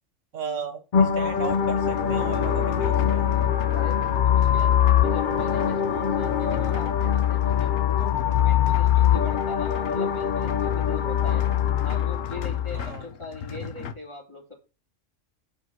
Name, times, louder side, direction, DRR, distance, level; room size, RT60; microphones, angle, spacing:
voice 1, 0.3-3.3 12.7-13.0, right 6 dB, 75° right, 1.4 m, -36 dB
sound 1, 0.9-12.9, left 9 dB, 50° left, 0.6 m, -23 dB
sound 2, 1.3-13.9, left 7 dB, 80° left, 1.2 m, -39 dB
Bowed string instrument, 1.9-7.3, left 4 dB, 5° right, 2.7 m, -36 dB
voice 2, 3.7-4.7 5.0-11.5 11.8-14.5, left 2 dB, 20° left, 3.4 m, -40 dB
8.0 x 5.4 x 6.8 m
omnidirectional pair, 1.3 m